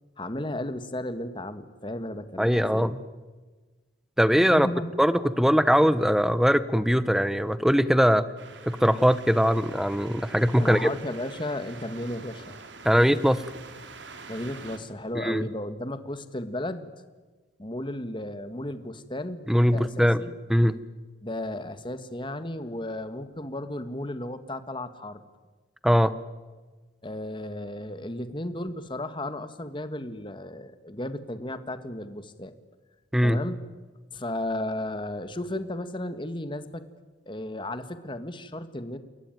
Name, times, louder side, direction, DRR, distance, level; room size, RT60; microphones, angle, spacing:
voice 1, 0.2-2.9 4.5-4.9 10.6-12.6 14.3-16.9 17.6-20.3 21.2-25.2 27.0-32.5 33.2-33.6 34.1-36.8 37.2-39.0, left 1 dB, 25° left, 11 dB, 1.7 m, -34 dB
voice 2, 2.4-3.0 4.2-4.7 5.0-8.3 8.7-10.9 12.8-13.4 15.1-15.4 19.5-20.2 20.5-20.8 25.8-26.1 33.1-33.4, equal, ahead, 15 dB, 1.0 m, -21 dB
sound 1, 8.4-14.8, right 4 dB, 80° right, 2.9 m, -45 dB
29.0 x 21.5 x 9.3 m, 1.3 s
head